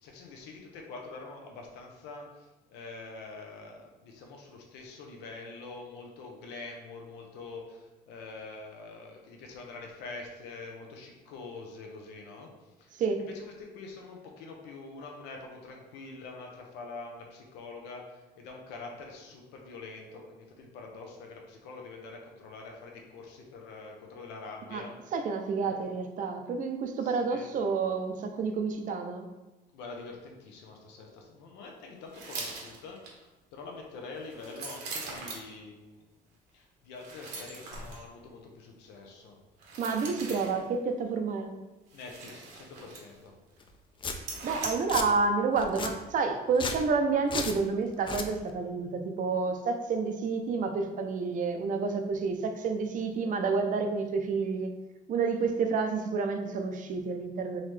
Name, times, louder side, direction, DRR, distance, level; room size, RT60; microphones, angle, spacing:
voice 1, 0.0-25.1 25.6-25.7 27.0-27.5 29.7-36.1 36.5-39.4 41.9-43.3, left 3 dB, 90° left, 1 dB, 0.8 m, -45 dB
voice 2, 25.1-29.3 39.8-41.5 44.4-54.7 55.1-57.6, right 4 dB, 50° right, 6 dB, 0.5 m, -29 dB
sound 1, 32.1-33.1 34.1-35.5 36.9-38.0 39.6-40.7 41.9-43.3 43.6-43.7 44.1-44.7, right 3 dB, 75° right, 1.0 m, -41 dB
Domestic sounds home sounds, 43.6-43.7 44.0-44.2 44.6-45.1 45.6-45.9 46.5-46.8 47.3-47.6 48.0-48.3, left 4 dB, 30° left, 0.4 m, -34 dB
3.9 x 3.1 x 3.2 m, 1.1 s
cardioid pair, 110°, 17 cm